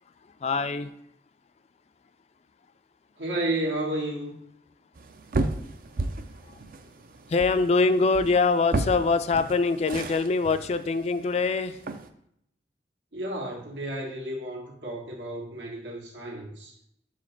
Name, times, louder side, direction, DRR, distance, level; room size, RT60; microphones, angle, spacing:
voice 1, 0.4-0.9 6.5-6.6 7.3-11.8, left 4 dB, 35° left, 10 dB, 0.3 m, -24 dB
voice 2, 3.2-4.3 13.1-16.8, right 1 dB, 85° right, -1 dB, 1.7 m, -32 dB
sound 1, 5.0-12.1, right 2 dB, 50° right, 0.5 m, -34 dB
5.0 x 4.0 x 5.8 m, 0.73 s
head